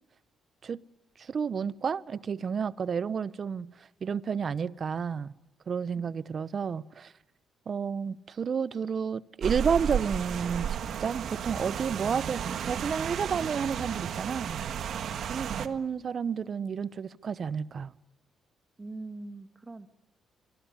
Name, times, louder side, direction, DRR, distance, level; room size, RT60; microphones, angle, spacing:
voice 1, 1.2-3.7 4.0-5.3 5.7-7.1 7.7-14.6 15.3-17.9, right 6 dB, 50° right, 0.9 m, -31 dB
voice 2, 5.9-6.3 18.8-19.9, right 2 dB, 25° right, 2.0 m, -43 dB
Rain, 9.4-15.7, right 8 dB, 70° right, 1.6 m, -33 dB
24.5 x 23.0 x 9.9 m
supercardioid pair, 70°, 0 cm